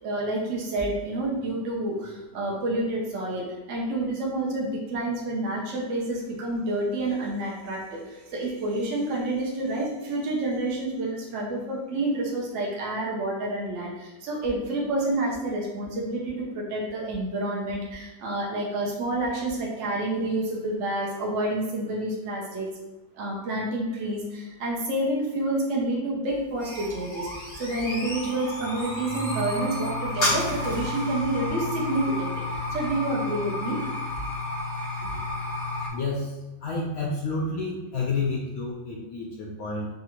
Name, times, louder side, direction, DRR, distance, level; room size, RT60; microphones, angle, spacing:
voice 1, 0.0-22.7 23.1-33.8, right 1 dB, 60° right, -3 dB, 0.7 m, -29 dB
sound 1, 26.3-35.9, left 1 dB, 45° left, 2.1 m, -31 dB
voice 2, 35.9-39.9, left 3 dB, 90° left, -3 dB, 0.7 m, -30 dB
5.2 x 2.5 x 2.9 m, 1.1 s
omnidirectional pair, 2.2 m